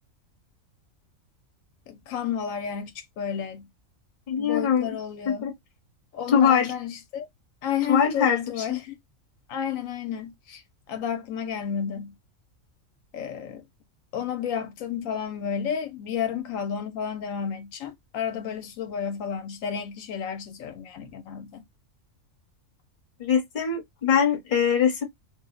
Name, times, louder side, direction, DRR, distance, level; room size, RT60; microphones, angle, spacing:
voice 1, 1.9-3.7 4.3-5.5 6.1-7.3 7.6-9.0 9.5-10.6 10.9-12.2 13.1-13.6 14.1-21.6, left 8 dB, 80° left, 1.0 m, -31 dB
voice 2, 4.3-4.9 5.3-5.5 6.3-6.7 7.9-8.8 23.2-25.0, left 7 dB, 40° left, 1.0 m, -22 dB
2.5 x 2.0 x 3.5 m
omnidirectional pair, 1.4 m